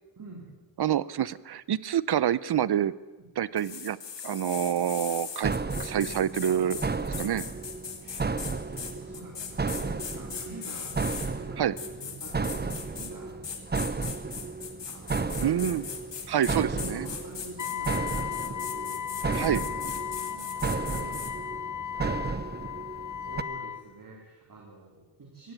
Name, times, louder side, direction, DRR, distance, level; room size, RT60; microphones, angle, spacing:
voice 1, 0.2-0.5 6.5-6.9 8.0-14.2 14.9-15.8 16.6-19.2 19.6-20.5 20.8-22.1 22.6-25.5, right 3 dB, 50° right, -1 dB, 3.6 m, -47 dB
voice 2, 0.8-2.9 3.4-4.0 4.2-5.5 5.8-6.8 7.2-7.4 11.6-11.7 15.4-15.8 16.3-17.1 19.3-19.6, right 10 dB, 65° right, 19 dB, 0.7 m, -27 dB
sound 1, 3.6-11.3 11.8-13.1 13.4-21.3, left 7 dB, 75° left, 2.4 m, -39 dB
sound 2, 5.4-23.4, right 4 dB, 25° right, 0.8 m, -33 dB
Wind instrument woodwind instrument, 17.6-23.8, left 10 dB, 45° left, 0.7 m, -36 dB
17.5 x 16.0 x 9.2 m, 1.2 s
wide cardioid pair, 100°, 43 cm